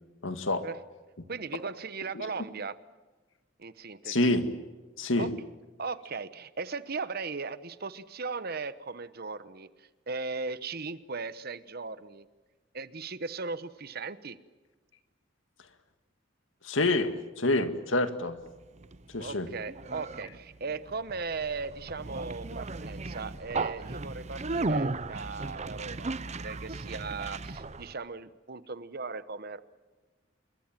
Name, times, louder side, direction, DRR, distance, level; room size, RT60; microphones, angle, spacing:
voice 1, 0.2-0.7 4.0-4.5 5.0-5.3 16.6-18.4 19.1-19.5, left 2 dB, 85° left, 9 dB, 2.1 m, -27 dB
voice 2, 1.3-2.8 3.6-4.3 5.2-5.3 5.8-12.3 12.7-14.4 19.2-29.6, right 4 dB, 55° right, 14 dB, 1.1 m, -38 dB
Conversation, 18.5-27.9, right 3 dB, 35° right, 0.8 m, -36 dB
27.5 x 23.0 x 7.5 m, 1.3 s
head